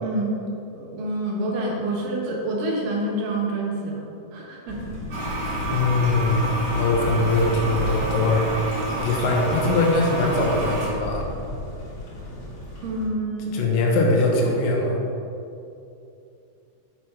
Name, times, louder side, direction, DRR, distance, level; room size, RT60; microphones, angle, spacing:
voice 1, 0.0-0.3 0.8-4.1 4.3-4.9 5.5-5.6 12.8-13.6, right 1 dB, 75° right, -2 dB, 2.1 m, -27 dB
sound 1, 4.7-13.0, left 2 dB, 50° left, 2.0 m, -34 dB
Toilet flush, 5.1-10.9, right 1 dB, 45° right, 1.4 m, -29 dB
voice 2, 5.7-6.4 6.8-8.6 9.0-11.3 13.5-15.0, left 2 dB, 75° left, -1 dB, 2.1 m, -22 dB
6.1 x 5.8 x 4.9 m, 2.7 s
omnidirectional pair, 4.9 m